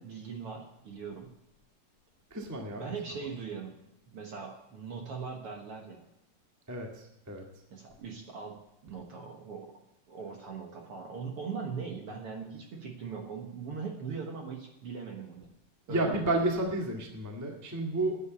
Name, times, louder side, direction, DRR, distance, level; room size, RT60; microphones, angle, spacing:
voice 1, 0.0-1.4 2.8-3.8 4.1-6.1 7.7-9.8 10.1-15.5 15.9-16.4, right 5 dB, 60° right, 2 dB, 1.7 m, -40 dB
voice 2, 2.3-2.8 6.7-7.4 15.9-18.2, right 2 dB, 20° right, 1 dB, 0.5 m, -31 dB
9.8 x 8.1 x 8.8 m, 0.83 s
omnidirectional pair, 4.0 m